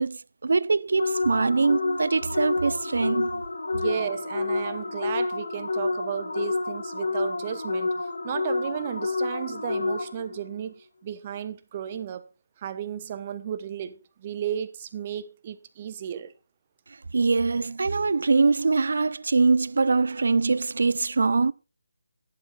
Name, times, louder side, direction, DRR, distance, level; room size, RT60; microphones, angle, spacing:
voice 1, 0.0-3.4 17.1-21.5, right 4 dB, 65° right, 0.5 m, -23 dB
sound 1, 1.0-10.4, left 3 dB, 80° left, 2.0 m, -29 dB
voice 2, 3.7-12.3 12.6-16.3, right 9 dB, 30° right, 1.0 m, -34 dB
11.5 x 8.2 x 4.1 m
figure-of-eight pair, 160°, 0 cm